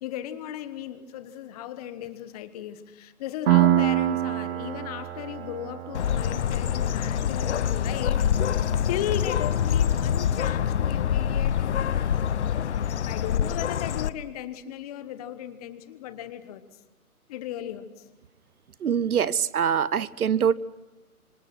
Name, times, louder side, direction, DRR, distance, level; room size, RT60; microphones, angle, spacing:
voice 1, 0.0-16.6 17.3-18.0, left 11 dB, 25° left, 12 dB, 1.2 m, -36 dB
Piano, 3.5-10.9, right 13 dB, 40° right, 1.9 m, -28 dB
Bird, 5.9-14.1, left 9 dB, 50° left, 0.9 m, -25 dB
voice 2, 18.8-20.5, right 8 dB, 75° right, 20 dB, 0.9 m, -24 dB
27.0 x 26.0 x 6.1 m, 1.1 s
hypercardioid pair, 140°, 45 cm